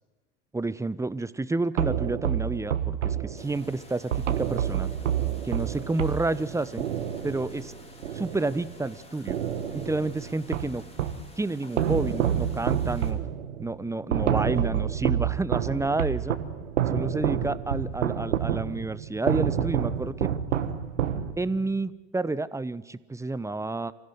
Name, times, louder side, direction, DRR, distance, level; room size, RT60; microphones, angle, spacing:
voice 1, 0.5-4.9 5.4-6.9 7.2-7.7 8.1-9.4 9.7-10.8 11.4-13.2 13.6-16.4 16.9-20.3 21.4-23.9, right 2 dB, 10° right, 17 dB, 0.9 m, -30 dB
sound 1, 1.8-8.9 9.3-11.3 11.8-21.7, right 9 dB, 80° right, 1.6 m, -28 dB
sound 2, 3.4-13.1, left 2 dB, 15° left, 4.4 m, -51 dB
25.0 x 16.0 x 9.5 m, 1.2 s
hypercardioid pair, 75°, 36 cm